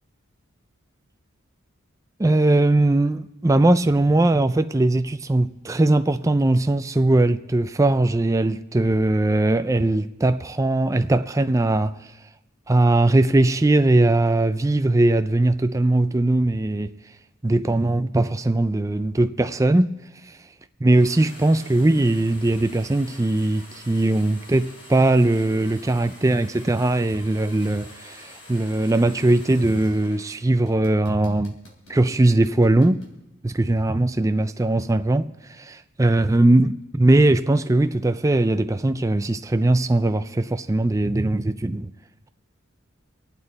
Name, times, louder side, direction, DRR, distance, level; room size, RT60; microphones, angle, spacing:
voice 1, 2.2-12.0 12.7-16.9 17.4-19.9 20.8-31.6 31.9-33.0 33.4-35.3 35.6-41.9, right 2 dB, 15° right, 0.4 m, -20 dB
sound 1, 20.9-30.3 30.6-33.1, left 1 dB, 85° left, 3.3 m, -46 dB
26.0 x 8.8 x 4.1 m
head